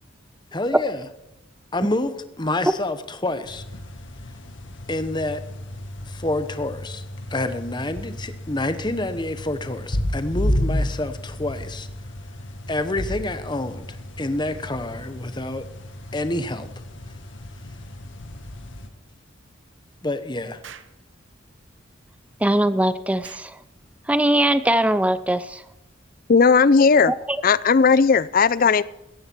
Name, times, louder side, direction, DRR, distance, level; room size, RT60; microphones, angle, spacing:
voice 1, 0.5-1.0 1.7-3.6 4.9-5.4 6.1-7.0 7.3-11.9 12.7-15.6 16.1-16.7 20.0-20.6, left 2 dB, 20° left, 10 dB, 1.0 m, -28 dB
sound 1, 3.4-18.9, left 1 dB, 65° left, 1.8 m, -32 dB
Explosion, 20.6-21.0 23.2-23.5, right 8 dB, 65° right, 1.1 m, -43 dB
voice 2, 22.4-23.6 24.1-25.6 27.1-27.4, right 1 dB, 5° right, 13 dB, 0.5 m, -21 dB
voice 3, 26.3-27.1 27.4-28.8, left 5 dB, 45° left, 19 dB, 0.5 m, -16 dB
17.0 x 14.0 x 4.6 m, 0.89 s
head